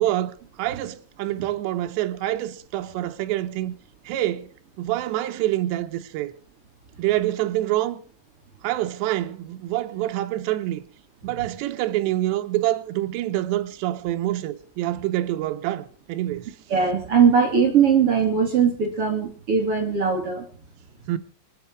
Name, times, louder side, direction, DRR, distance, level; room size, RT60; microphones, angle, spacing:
voice 1, 0.0-3.7 4.1-4.5 4.8-6.3 7.0-8.0 8.6-10.8 11.2-16.5 21.1-21.2, right 14 dB, 75° right, 3.1 m, -26 dB
voice 2, 16.7-20.5, right 6 dB, 35° right, 2.8 m, -20 dB
25.5 x 9.4 x 4.6 m
omnidirectional pair, 5.3 m